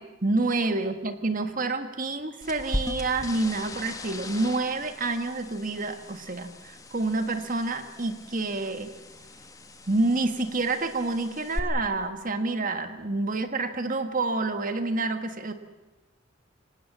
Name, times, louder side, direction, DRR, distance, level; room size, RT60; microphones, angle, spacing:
voice 1, 0.0-8.9 9.9-15.5, right 2 dB, 45° right, 8 dB, 1.6 m, -28 dB
sound 1, 2.4-11.6, left 1 dB, 20° left, 1.3 m, -39 dB
25.0 x 18.5 x 7.4 m, 1.1 s
head